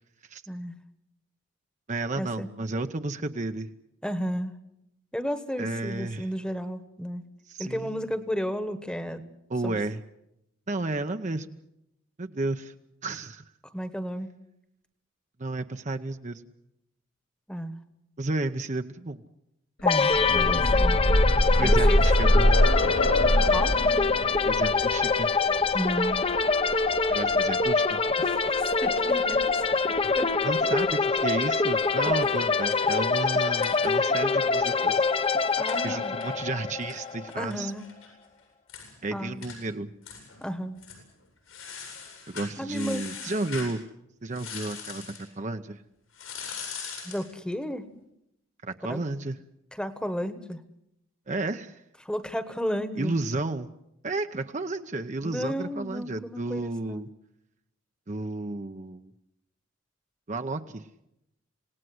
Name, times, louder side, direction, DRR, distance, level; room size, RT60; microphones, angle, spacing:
voice 1, 0.5-0.8 2.2-2.5 4.0-4.6 5.1-7.2 7.6-9.2 9.6-9.8 13.7-14.3 17.5-17.8 19.8-21.0 21.6-22.0 23.5-23.7 25.7-26.2 28.2-29.5 29.9-30.3 30.6-30.7 32.0-32.1 35.6-36.1 37.3-37.9 39.1-39.4 40.4-40.8 42.6-43.1 47.0-47.8 48.8-49.0 49.7-50.6 52.0-53.1 55.2-57.0, equal, 5° left, 11 dB, 1.3 m, -33 dB
voice 2, 1.9-3.7 5.6-6.3 7.5-8.0 9.5-10.0 10.7-11.6 12.2-12.7 13.0-13.4 15.4-16.4 18.2-19.2 21.6-22.7 24.4-25.3 27.1-28.0 30.4-35.0 35.8-37.7 39.0-39.9 42.3-43.8 44.2-45.8 48.6-49.4 51.3-51.8 53.0-53.7 54.0-57.1 58.1-59.1 60.3-60.8, right 2 dB, 35° right, 7 dB, 0.8 m, -32 dB
sound 1, 19.9-27.7 28.8-28.9 29.3-29.4, left 1 dB, 65° left, 2.9 m, -24 dB
sound 2, 19.9-37.5, left 4 dB, 25° left, 0.8 m, -25 dB
sound 3, 31.7-34.3 34.6-34.7 34.9-38.1 38.4-38.5 38.7-38.9 39.4-39.6 40.0-40.4 40.8-41.0 41.5-43.8 44.3-45.3 46.1-47.3, left 6 dB, 90° left, 7.9 m, -42 dB
27.0 x 18.0 x 7.9 m, 0.83 s
head